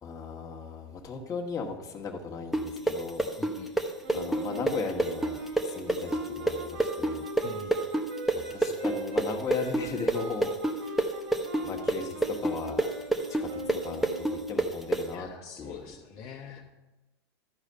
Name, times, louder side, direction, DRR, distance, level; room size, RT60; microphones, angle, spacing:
voice 1, 0.0-3.3 4.1-7.2 8.3-10.5 10.8-11.0 11.6-12.9 13.4-13.5 13.8-14.0 14.3-15.3 15.6-15.8, left 5 dB, 25° left, 0 dB, 1.7 m, -37 dB
sound 1, 2.5-10.2 10.4-15.0, right 1 dB, ahead, 0.9 m, -27 dB
voice 2, 3.4-3.7 7.4-7.8 15.1-16.6, left 6 dB, 45° left, 0 dB, 1.2 m, -44 dB
sound 2, 4.0-14.5, right 3 dB, 65° right, 2.8 m, -41 dB
12.5 x 4.9 x 6.8 m, 1.1 s
hypercardioid pair, 105°, 14 cm